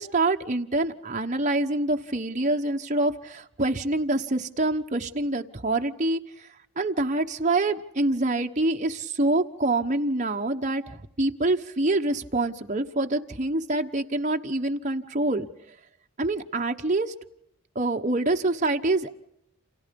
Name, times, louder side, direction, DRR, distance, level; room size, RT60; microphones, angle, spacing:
voice 1, 0.0-6.2 6.8-15.5 16.2-17.1 17.7-19.1, right 2 dB, 35° right, 4 dB, 1.1 m, -26 dB
29.5 x 27.5 x 5.3 m, 0.76 s
head